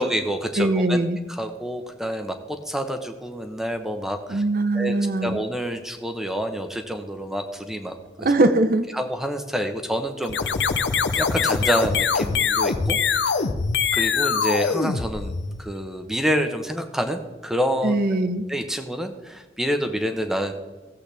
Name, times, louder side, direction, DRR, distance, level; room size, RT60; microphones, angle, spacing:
voice 1, 0.0-1.0 1.3-4.4 4.7-4.9 5.2-8.5 8.9-10.5 11.1-13.0 13.3-13.5 13.9-18.0 18.5-20.5, equal, 5° right, 6 dB, 0.9 m, -27 dB
voice 2, 0.6-1.2 4.3-5.4 8.2-8.9 13.5-13.6 17.8-18.4, right 2 dB, 55° right, 10 dB, 0.7 m, -21 dB
sound 1, 10.2-15.7, left 5 dB, 85° left, 0.7 m, -23 dB
16.0 x 7.9 x 3.4 m, 1.2 s
head